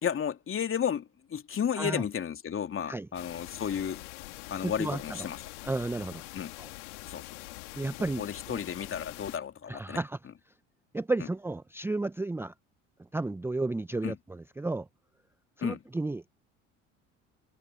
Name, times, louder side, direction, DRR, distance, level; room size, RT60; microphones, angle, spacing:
voice 1, 0.0-4.0 4.5-5.4 6.3-6.5 7.1-7.2 8.2-10.0 14.0-14.1 15.6-15.8, left 8 dB, 35° left, 2.9 m, -33 dB
sound 1, 3.1-9.4, left 22 dB, 70° left, 3.0 m, -44 dB
voice 2, 4.6-5.3 5.6-6.2 6.6-6.7 7.7-8.6 9.7-10.2 10.9-12.5 13.1-14.9 15.6-16.3, right 2 dB, 5° right, 0.7 m, -33 dB
hypercardioid pair, 65°, 37 cm